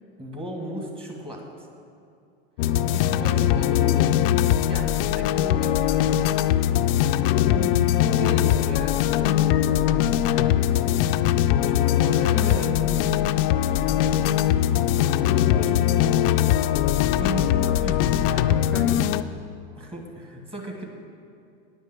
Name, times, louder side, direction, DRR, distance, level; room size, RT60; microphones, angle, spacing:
voice 1, 0.2-1.7 2.6-3.9 4.6-6.2 7.5-11.0 11.6-14.6 15.0-15.9 17.1-18.5 19.8-20.8, equal, 20° right, 1 dB, 1.7 m, -36 dB
sound 1, 2.6-19.2, left 11 dB, 70° left, 0.4 m, -21 dB
voice 2, 3.8-4.2 12.3-12.8 18.5-19.0, left 1 dB, 5° left, 4 dB, 0.4 m, -34 dB
9.5 x 5.4 x 8.1 m, 2.5 s
supercardioid pair, 125°, 30 cm